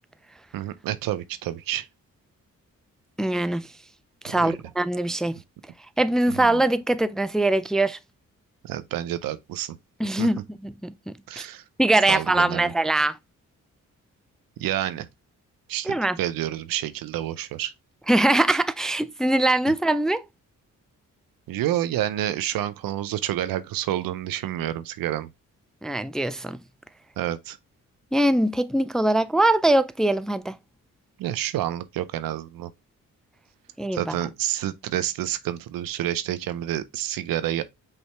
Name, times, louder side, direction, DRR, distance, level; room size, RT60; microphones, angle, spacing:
voice 1, 0.5-1.9 4.4-4.6 6.4-6.6 8.6-9.8 10.2-10.3 11.3-11.6 12.1-12.7 14.6-15.1 15.7-17.7 21.5-25.3 27.2-27.6 31.2-32.7 33.9-37.6, right 12 dB, 90° right, 0.6 m, -29 dB
voice 2, 3.2-3.7 4.2-5.4 6.0-8.0 10.0-11.5 11.8-13.2 15.8-16.2 18.1-20.2 25.8-26.6 28.1-30.6 33.8-34.2, right 1 dB, ahead, 0.3 m, -22 dB
5.5 x 2.8 x 3.2 m
cardioid pair, 60°, 33 cm